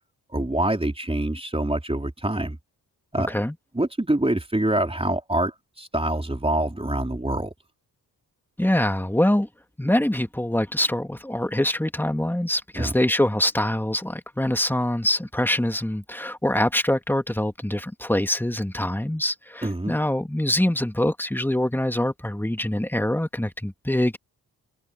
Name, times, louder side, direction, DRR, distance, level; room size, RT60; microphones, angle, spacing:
voice 1, 0.3-2.6 3.1-3.4 3.7-7.5 12.8-12.9 19.6-20.0, right 1 dB, 15° right, 3.9 m, -25 dB
voice 2, 8.6-9.5 9.8-24.2, left 1 dB, 5° left, 2.1 m, -24 dB
supercardioid pair, 45°, 41 cm